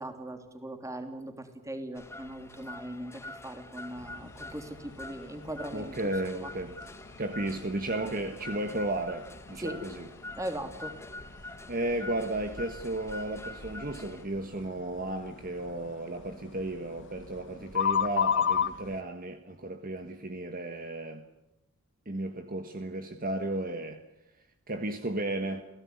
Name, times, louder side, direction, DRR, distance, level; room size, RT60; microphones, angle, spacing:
voice 1, 0.0-6.5 9.5-9.8 10.3-10.9, right 1 dB, 15° right, 3.1 m, -39 dB
sound 1, 1.9-14.2, left 2 dB, 10° left, 1.2 m, -46 dB
sound 2, 4.0-19.0, left 7 dB, 55° left, 1.1 m, -37 dB
voice 2, 5.7-6.8 7.2-10.0 11.7-21.2 22.0-24.0 24.7-25.6, right 1 dB, 40° right, 1.5 m, -34 dB
28.0 x 17.0 x 9.7 m
head